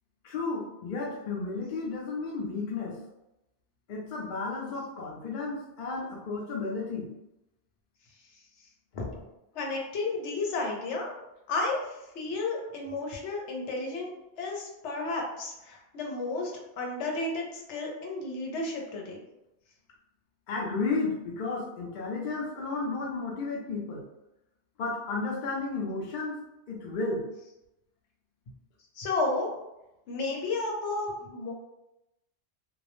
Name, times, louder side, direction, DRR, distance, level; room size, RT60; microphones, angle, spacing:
voice 1, 0.2-3.0 3.9-7.1 8.9-9.1 20.5-24.0 24.8-26.4 26.7-27.2, left 3 dB, 55° left, -2 dB, 0.6 m, -33 dB
voice 2, 9.5-11.1 11.5-14.1 14.4-19.2 28.9-29.5 30.1-31.5, left 3 dB, 85° left, -1 dB, 0.9 m, -32 dB
2.3 x 2.0 x 3.0 m, 0.91 s
omnidirectional pair, 1.2 m